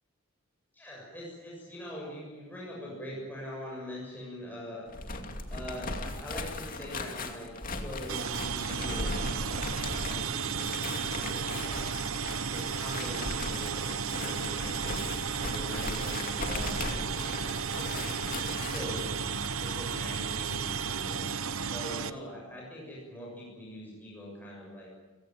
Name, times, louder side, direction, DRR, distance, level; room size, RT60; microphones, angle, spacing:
voice 1, 0.7-4.9 5.5-12.0 12.4-15.1 15.4-19.3 19.6-21.3 21.6-24.9, equal, 10° left, -4 dB, 7.2 m, -43 dB
sound 1, 4.9-19.0, left 2 dB, 40° left, 2.5 m, -38 dB
sound 2, 8.1-22.1, right 6 dB, 75° right, 1.0 m, -33 dB
29.5 x 17.5 x 9.2 m, 1.2 s
head